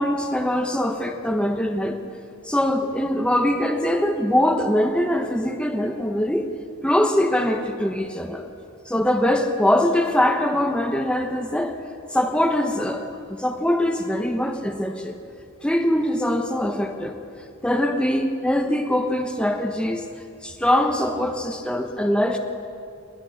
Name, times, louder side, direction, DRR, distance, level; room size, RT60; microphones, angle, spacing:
voice 1, 0.0-2.0 2.4-6.5 6.8-8.5 8.9-11.7 12.1-15.2 15.6-17.2 17.6-20.0 20.4-22.4, left 1 dB, 5° left, 4 dB, 1.1 m, -22 dB
20.5 x 20.5 x 6.5 m, 2.4 s
head